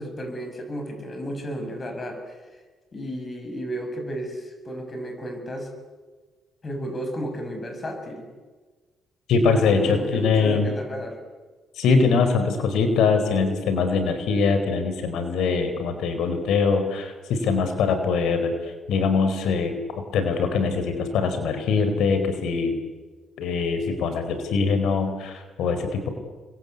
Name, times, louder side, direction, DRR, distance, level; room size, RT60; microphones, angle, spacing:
voice 1, 0.0-2.4 2.9-5.7 6.6-8.3 9.5-11.2, equal, 35° left, 5 dB, 7.9 m, -33 dB
voice 2, 9.3-10.7 11.8-19.7 20.1-22.8 23.4-26.1, left 4 dB, 80° left, 8 dB, 4.6 m, -22 dB
30.0 x 23.5 x 8.5 m, 1.3 s
cardioid pair, 90°, 0 cm